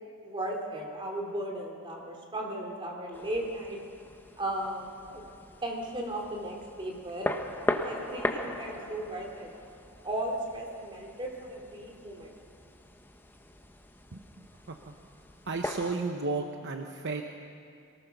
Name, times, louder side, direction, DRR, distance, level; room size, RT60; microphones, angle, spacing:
voice 1, 0.2-3.8 4.4-5.2 5.6-7.3 7.8-9.5 10.0-12.4, right 1 dB, 20° right, 0 dB, 2.7 m, -36 dB
sound 1, 3.1-16.0, left 1 dB, 10° left, 0.9 m, -39 dB
voice 2, 14.1-14.9 15.4-17.2, right 3 dB, 55° right, 4 dB, 0.9 m, -34 dB
23.5 x 19.0 x 6.0 m, 2.5 s
head